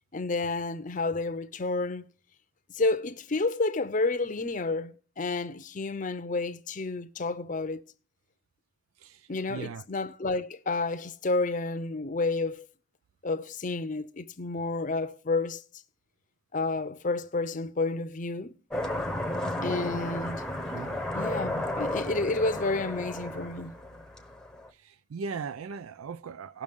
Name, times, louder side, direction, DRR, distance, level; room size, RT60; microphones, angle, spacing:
voice 1, 0.1-2.0 2.7-7.8 9.3-12.7 13.2-15.6 16.5-18.6 19.6-20.4 21.1-23.7, left 3 dB, 40° left, 0.6 m, -30 dB
voice 2, 9.0-9.8 20.7-20.9 24.8-26.6, right 5 dB, 90° right, 0.4 m, -39 dB
sound 1, 18.7-24.7, left 1 dB, 5° left, 0.8 m, -33 dB
18.0 x 6.2 x 3.5 m
head